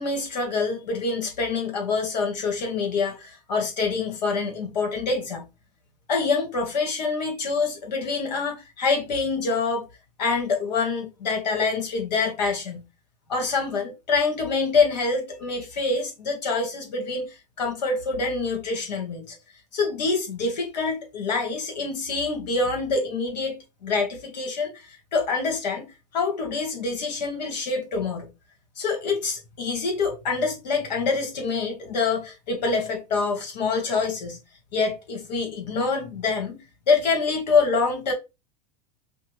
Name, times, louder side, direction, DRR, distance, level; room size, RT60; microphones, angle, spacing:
voice 1, 0.0-5.5 6.1-9.8 10.2-12.8 13.3-19.4 19.7-25.9 26.1-28.3 28.8-34.4 34.7-36.6 36.9-38.1, left 4 dB, 85° left, 1.6 m, -26 dB
5.3 x 2.3 x 3.1 m
hypercardioid pair, 105°, 21 cm